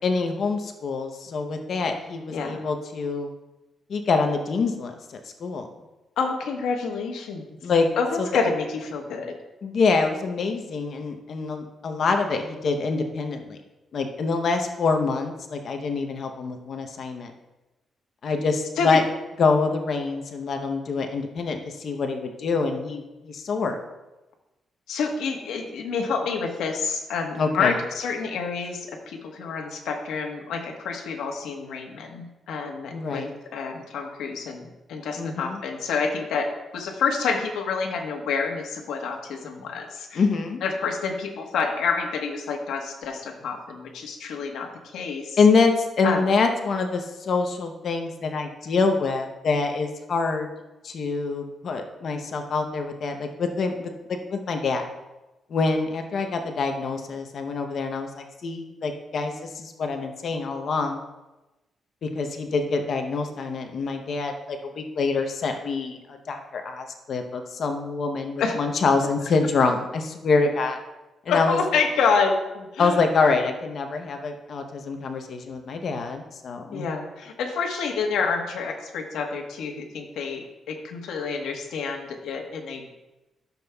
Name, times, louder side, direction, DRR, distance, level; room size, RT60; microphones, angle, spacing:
voice 1, 0.0-3.3 3.9-5.7 7.6-7.9 8.2-8.3 9.6-13.6 13.9-17.3 18.2-19.0 19.4-23.8 27.4-27.7 32.9-33.3 35.2-35.6 40.1-40.6 45.4-50.5 50.8-53.9 54.3-54.9 55.5-61.0 62.0-70.8 71.3-71.6 72.8-76.9, left 4 dB, 60° left, 5 dB, 0.7 m, -25 dB
voice 2, 2.3-2.6 6.2-7.6 8.0-9.3 18.8-19.0 24.9-33.3 33.5-40.2 40.6-45.4 46.0-46.2 68.4-68.6 71.3-73.0 76.7-83.0, left 5 dB, 90° left, 3 dB, 1.2 m, -28 dB
13.0 x 7.0 x 2.3 m, 1.0 s
cardioid pair, 105°, 0 cm